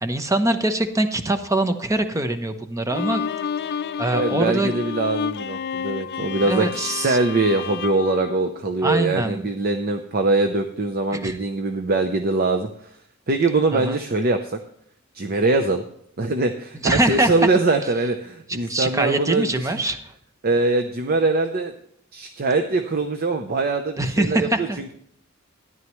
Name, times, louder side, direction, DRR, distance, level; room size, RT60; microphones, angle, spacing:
voice 1, 0.0-3.2 3.6-4.7 6.5-7.2 8.8-9.5 11.1-11.4 13.7-14.0 16.8-17.3 18.7-20.1 24.0-24.8, right 1 dB, 15° right, 9 dB, 0.8 m, -23 dB
Bowed string instrument, 2.9-9.2, left 7 dB, 50° left, 0.5 m, -30 dB
voice 2, 4.1-12.7 13.3-14.6 15.1-15.8 16.2-19.7 20.4-21.7 22.1-24.9, right 3 dB, 45° right, 6 dB, 0.7 m, -22 dB
13.0 x 10.5 x 3.1 m, 0.68 s
head